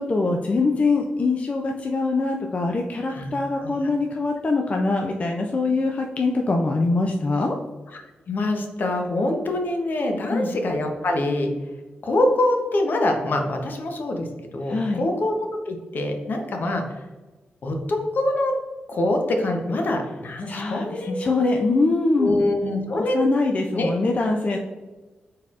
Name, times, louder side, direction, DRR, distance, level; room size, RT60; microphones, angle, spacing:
voice 1, 0.0-7.6 10.3-10.5 14.6-15.1 20.5-22.4 23.0-24.6, left 3 dB, 40° left, 2 dB, 0.4 m, -23 dB
voice 2, 3.1-3.9 7.9-8.0 8.3-11.5 12.0-17.0 17.6-18.5 18.9-21.5 22.2-23.3 23.8-23.9 24.5-24.6, left 1 dB, 60° left, 3 dB, 0.8 m, -25 dB
4.2 x 4.1 x 2.4 m, 1.2 s
cardioid pair, 75°, 4 cm